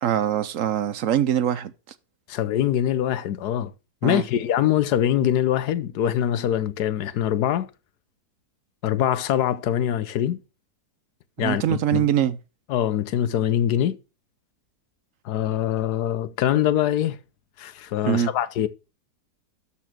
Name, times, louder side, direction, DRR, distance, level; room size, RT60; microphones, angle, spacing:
voice 1, 0.0-1.7 4.0-4.2 11.4-12.4 18.0-18.3, right 10 dB, 65° right, 0.9 m, -23 dB
voice 2, 2.3-3.7 4.0-7.7 8.8-10.4 11.4-12.1 12.7-14.0 15.2-17.2 17.6-18.7, left 11 dB, 90° left, 1.3 m, -23 dB
13.0 x 4.4 x 5.9 m
omnidirectional pair, 1.7 m